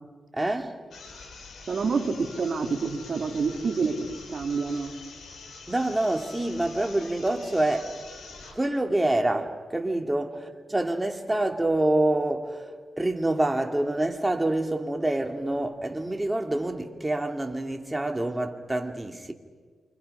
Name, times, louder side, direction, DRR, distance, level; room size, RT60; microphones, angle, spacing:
voice 1, 0.3-0.8 5.7-7.9 8.5-19.3, right 1 dB, 15° right, 2.6 m, -27 dB
sound 1, 0.9-8.7, left 3 dB, 70° left, 7.0 m, -45 dB
voice 2, 1.7-4.9, right 4 dB, 60° right, 3.1 m, -28 dB
29.0 x 26.0 x 5.6 m
cardioid pair, 65°, 0 cm